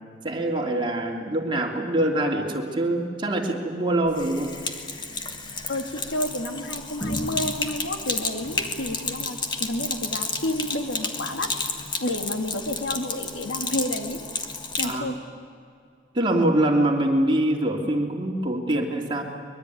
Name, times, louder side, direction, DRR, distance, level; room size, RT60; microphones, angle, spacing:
voice 1, 0.2-4.5 14.8-15.1 16.1-19.2, right 1 dB, 25° right, 1 dB, 2.9 m, -24 dB
Sink (filling or washing), 4.1-15.0, left 3 dB, 25° left, 1.7 m, -31 dB
voice 2, 5.7-11.5 12.0-14.2 14.8-15.2, left 1 dB, 75° left, 4 dB, 2.5 m, -30 dB
24.5 x 21.5 x 9.5 m, 2.2 s
head